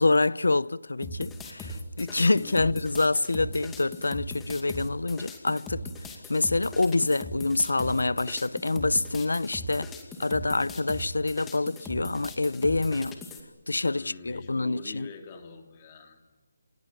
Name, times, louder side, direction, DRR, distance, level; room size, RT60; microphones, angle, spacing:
voice 1, 0.0-5.8 6.3-9.9 10.2-13.2 13.7-15.1, left 3 dB, 90° left, 0.8 m, -26 dB
sound 1, 1.0-13.4, left 1 dB, 10° left, 2.3 m, -39 dB
voice 2, 2.3-2.9 13.9-16.3, left 5 dB, 25° left, 3.1 m, -45 dB
29.0 x 17.0 x 9.6 m
figure-of-eight pair, 165°, 0 cm